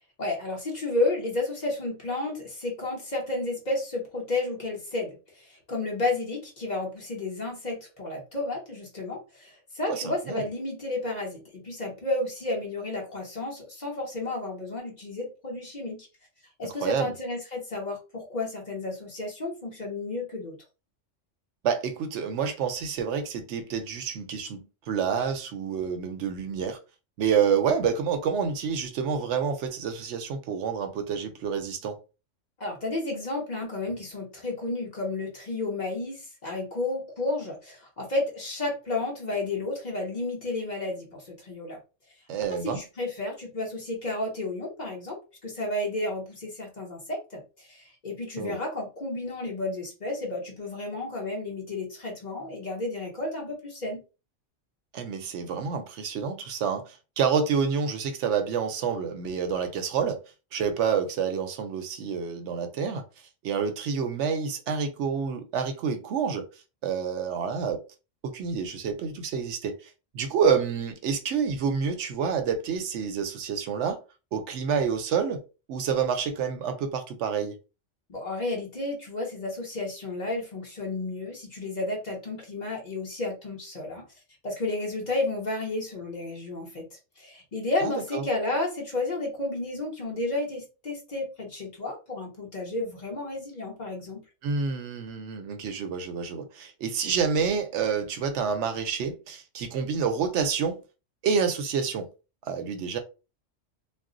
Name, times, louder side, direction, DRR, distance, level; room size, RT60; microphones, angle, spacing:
voice 1, 0.2-16.1 16.6-20.6 32.6-41.8 42.6-54.0 78.1-84.1 84.4-86.9 87.2-94.2, left 2 dB, 40° left, 0.9 m, -32 dB
voice 2, 9.9-10.5 16.8-17.1 21.6-26.8 27.2-32.0 42.3-42.8 48.4-48.6 54.9-60.2 60.5-63.0 63.4-66.5 66.8-67.8 68.2-74.0 74.3-75.4 75.7-77.6 87.8-88.3 94.4-100.8 101.2-102.1 102.5-103.0, right 6 dB, 75° right, 0.8 m, -28 dB
2.4 x 2.0 x 3.7 m
omnidirectional pair, 1.3 m